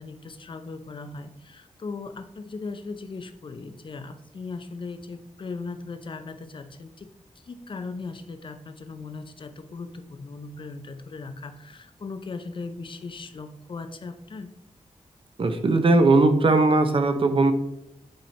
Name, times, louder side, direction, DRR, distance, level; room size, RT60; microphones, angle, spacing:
voice 1, 0.0-14.5, left 4 dB, 45° left, 9 dB, 0.5 m, -38 dB
voice 2, 15.4-17.5, right 3 dB, 45° right, 8 dB, 0.6 m, -19 dB
7.6 x 4.2 x 3.2 m, 0.80 s
wide cardioid pair, 135°, 12 cm